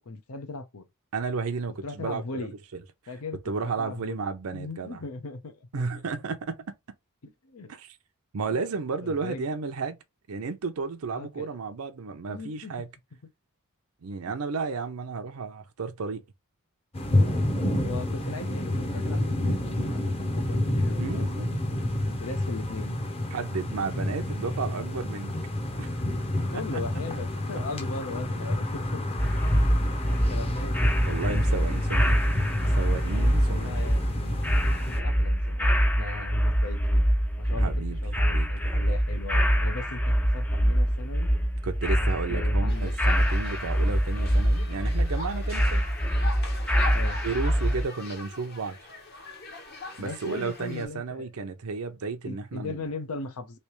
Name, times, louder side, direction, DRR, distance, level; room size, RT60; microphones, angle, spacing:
voice 1, 0.0-0.8 1.8-2.5 3.1-4.3 4.5-5.9 7.2-7.7 8.4-8.6 9.0-9.5 11.1-11.5 12.3-12.9 14.3-14.4 17.7-21.4 21.9-23.3 26.5-29.2 29.7-29.8 30.1-31.1 33.4-37.0 37.4-37.7 38.0-41.3 41.9-42.9 43.3-43.6 46.9-47.2 50.0-51.5 52.2-53.6, left 3 dB, 80° left, 0.7 m, -39 dB
voice 2, 1.1-2.5 3.5-5.0 5.7-6.6 7.7-8.0 8.3-10.0 10.3-12.9 14.0-16.2 21.0-21.6 23.3-25.4 25.8-25.9 26.5-26.8 31.1-32.3 32.6-33.8 37.6-38.8 41.6-45.8 47.2-48.8 50.0-52.9, right 4 dB, 70° right, 0.6 m, -33 dB
sound 1, 16.9-35.0, left 1 dB, 25° left, 0.7 m, -29 dB
sound 2, 29.2-47.8, equal, 5° left, 0.4 m, -24 dB
sound 3, 42.7-50.9, left 3 dB, 45° left, 1.0 m, -42 dB
3.3 x 2.8 x 3.0 m
head